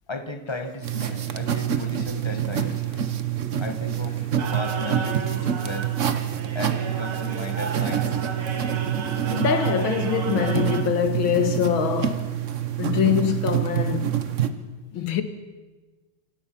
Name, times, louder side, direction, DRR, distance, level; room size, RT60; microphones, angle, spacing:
voice 1, 0.1-2.8 3.6-4.2 4.5-5.9 6.5-8.1, left 1 dB, 15° left, 1.1 m, -35 dB
sound 1, 0.8-14.5, right 10 dB, 45° right, 1.1 m, -26 dB
sound 2, 4.4-10.8, right 4 dB, 85° right, 2.6 m, -34 dB
voice 2, 9.3-12.3 12.8-14.1 14.9-15.2, left 8 dB, 70° left, 2.2 m, -24 dB
27.0 x 17.0 x 6.0 m
omnidirectional pair, 2.3 m